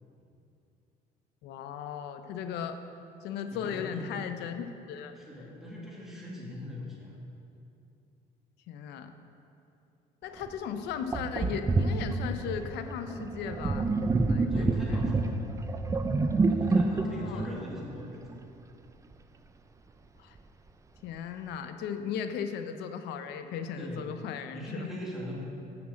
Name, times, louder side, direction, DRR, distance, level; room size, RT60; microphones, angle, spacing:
voice 1, 1.4-2.8 3.2-5.2 8.7-9.1 10.2-13.9 14.3-15.3 16.8-17.5 20.2-20.4 21.0-24.9, left 7 dB, 80° left, 8 dB, 0.6 m, -37 dB
voice 2, 3.5-4.1 5.1-7.1 14.5-15.4 16.5-18.2 23.8-24.1 24.5-25.4, left 1 dB, ahead, -5 dB, 2.0 m, -41 dB
Sink (filling or washing), 10.4-10.5 11.1-18.4, right 3 dB, 20° right, 0.4 m, -28 dB
6.4 x 5.9 x 7.3 m, 2.7 s
cardioid pair, 110°, 17 cm